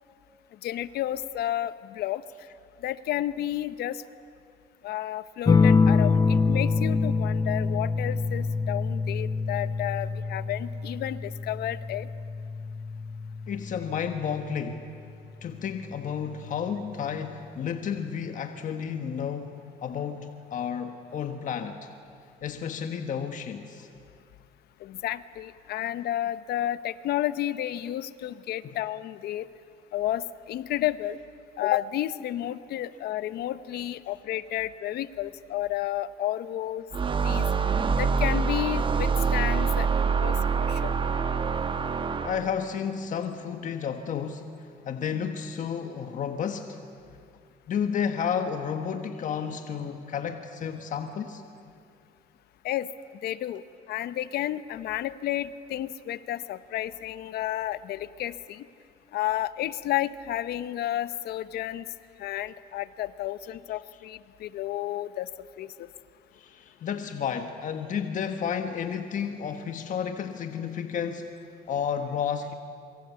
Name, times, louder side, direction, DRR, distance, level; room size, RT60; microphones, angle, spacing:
voice 1, 0.6-2.2 2.8-4.0 4.8-12.1 24.8-29.5 29.9-31.2 31.6-36.9 37.2-37.5 38.0-40.4 40.7-40.9 52.6-52.9 53.2-53.6 53.9-58.6 59.1-61.9 62.2-65.3 65.6-65.9, left 13 dB, 70° left, 14 dB, 0.9 m, -31 dB
sound 1, 5.5-14.5 16.0-16.5, left 4 dB, 20° left, 0.8 m, -26 dB
voice 2, 13.5-14.9 15.4-21.9 22.4-23.9 28.6-28.7 42.2-44.5 44.8-46.8 47.7-51.4 66.3-71.3 71.7-72.5, left 7 dB, 50° left, 6 dB, 1.4 m, -32 dB
sound 2, 36.9-42.6, right 5 dB, 30° right, 1.2 m, -25 dB
26.5 x 23.5 x 8.4 m, 2.3 s
cardioid pair, 110°, 17 cm